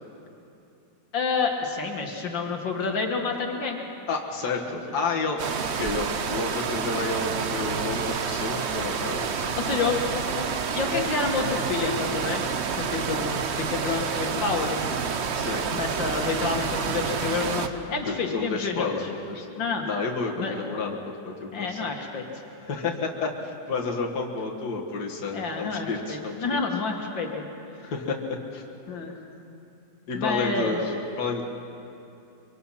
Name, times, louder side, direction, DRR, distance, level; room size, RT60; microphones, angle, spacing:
voice 1, 1.1-3.8 4.7-4.8 9.6-10.5 10.7-12.4 12.8-15.0 15.7-19.1 19.6-19.9 20.4-20.6 21.5-22.2 25.3-27.5 28.9-29.1 30.1-30.8, left 4 dB, 75° left, 2 dB, 2.3 m, -29 dB
voice 2, 4.1-5.4 5.8-9.5 15.3-15.7 18.0-19.5 19.8-21.0 21.3-21.9 22.6-26.4 27.8-28.6 30.1-31.4, left 4 dB, 60° left, -1 dB, 2.2 m, -30 dB
sound 1, 5.4-17.7, right 6 dB, 50° right, 0.8 m, -29 dB
24.5 x 24.0 x 5.8 m, 2.8 s
omnidirectional pair, 2.0 m